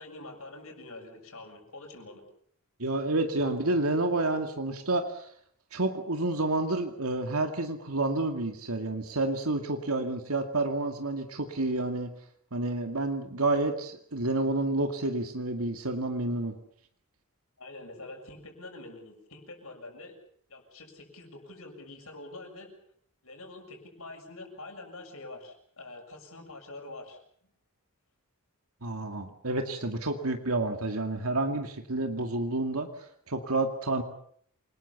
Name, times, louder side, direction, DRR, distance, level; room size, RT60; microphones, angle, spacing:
voice 1, 0.0-2.2 17.6-20.2 20.5-22.7 23.2-27.5, left 2 dB, 70° left, 4 dB, 6.9 m, -45 dB
voice 2, 2.8-5.3 5.7-12.1 12.5-16.5 28.8-32.9 33.3-34.0, right 2 dB, 75° right, 5 dB, 2.3 m, -29 dB
28.0 x 20.5 x 7.1 m, 0.63 s
head